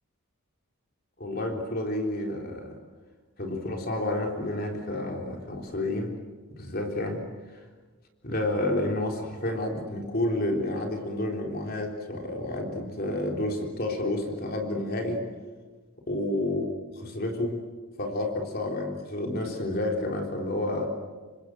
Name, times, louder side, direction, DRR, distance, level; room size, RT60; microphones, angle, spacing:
voice 1, 1.2-2.8 3.4-6.2 6.5-7.3 8.2-15.2 16.1-16.7 16.9-17.6 18.0-20.9, left 1 dB, 45° left, 2 dB, 3.8 m, -30 dB
28.0 x 25.0 x 7.9 m, 1.4 s
head